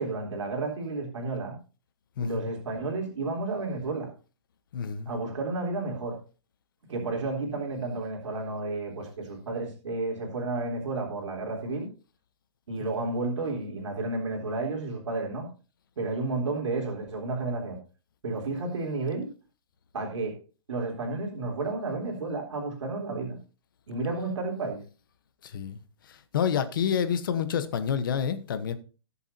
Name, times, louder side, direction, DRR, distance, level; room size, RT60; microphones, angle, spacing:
voice 1, 0.0-1.6 2.2-4.1 5.1-6.2 6.9-11.9 12.7-15.5 16.0-17.8 18.2-19.3 19.9-20.4 20.7-23.4 23.9-24.8, right 3 dB, 80° right, 3.6 m, -31 dB
voice 2, 2.2-2.5 4.7-5.1 25.4-25.8 26.1-28.8, left 7 dB, 45° left, 1.1 m, -28 dB
18.0 x 7.0 x 2.8 m
hypercardioid pair, 175°, 15 cm